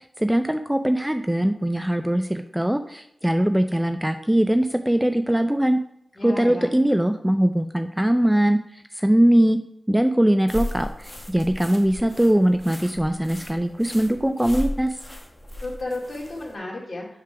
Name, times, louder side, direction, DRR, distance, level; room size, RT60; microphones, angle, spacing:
voice 1, 0.2-5.8 6.2-9.6 9.9-15.0, right 1 dB, 5° right, 8 dB, 0.4 m, -21 dB
voice 2, 6.2-6.8 15.6-17.2, left 2 dB, 50° left, -2 dB, 2.4 m, -33 dB
sound 1, 10.5-16.5, left 1 dB, 15° left, 1.1 m, -36 dB
7.5 x 3.7 x 5.7 m, 0.71 s
wide cardioid pair, 95°, 0 cm